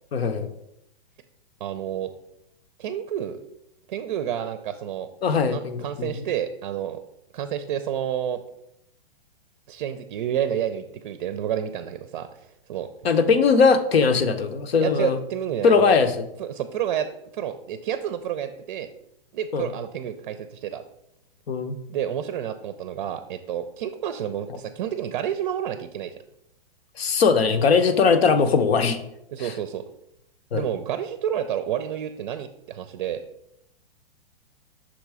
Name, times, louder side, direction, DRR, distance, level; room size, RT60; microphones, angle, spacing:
voice 1, 0.1-0.5 5.2-6.1 13.0-15.2 15.6-16.1 19.5-19.7 21.5-21.8 27.0-29.0 29.4-29.5 30.5-30.6, left 5 dB, 85° left, 8 dB, 0.9 m, -20 dB
voice 2, 1.6-2.1 2.8-3.4 3.9-5.1 5.5-7.0 7.3-8.4 9.7-12.9 14.8-16.0 16.4-18.9 19.3-20.8 21.9-26.1 29.3-29.8 30.5-33.2, right 10 dB, 45° right, 10 dB, 0.5 m, -29 dB
6.1 x 4.0 x 4.8 m, 0.82 s
hypercardioid pair, 155°, 30 cm